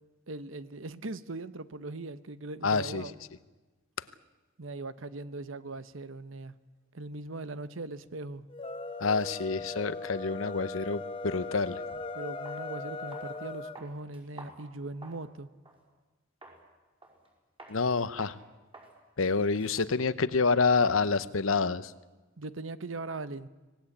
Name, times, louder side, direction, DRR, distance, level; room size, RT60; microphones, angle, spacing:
voice 1, 0.3-3.1 4.6-6.6 6.9-8.5 12.1-15.5 22.4-23.5, right 2 dB, 75° right, 1.0 m, -40 dB
voice 2, 2.6-3.1 9.0-11.8 17.7-18.4 19.2-21.9, left 4 dB, 90° left, 0.9 m, -27 dB
sound 1, 8.5-13.8, left 3 dB, 25° left, 1.1 m, -39 dB
sound 2, 12.4-12.6 13.1-13.4 13.7-15.3 15.6-15.8 16.4-16.6 17.0-17.3 17.6-17.8 18.2-18.4 18.7-18.9 19.2-21.2, right 1 dB, 30° right, 5.6 m, -51 dB
25.5 x 18.5 x 8.6 m
head